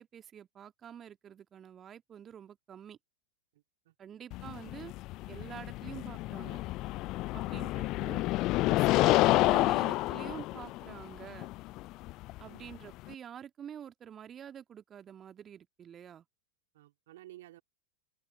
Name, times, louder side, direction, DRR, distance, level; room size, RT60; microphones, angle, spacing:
voice 1, 0.0-3.0 4.0-4.9 5.3-6.6 7.3-8.3 8.6-11.5 12.4-16.3, right 9 dB, 25° right, 1.9 m, -47 dB
voice 2, 3.5-3.9 7.2-7.4 12.5-12.7 16.7-17.6, right 15 dB, 55° right, 2.8 m, -54 dB
sound 1, 4.3-13.1, left 19 dB, 40° left, 0.3 m, -29 dB
open air
figure-of-eight pair, 90°, 0 cm